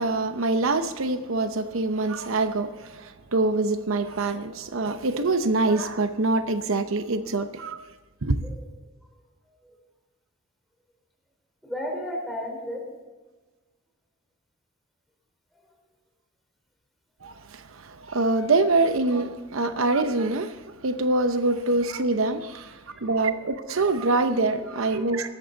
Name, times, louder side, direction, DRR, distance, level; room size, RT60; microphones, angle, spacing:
voice 1, 0.0-7.9 8.2-8.5 17.2-25.3, right 2 dB, 85° right, 0.8 m, -25 dB
voice 2, 11.6-12.8 15.5-15.6 19.6-19.7 22.9-23.1 24.6-25.3, equal, ahead, 4.3 m, -35 dB
18.0 x 14.0 x 4.0 m
head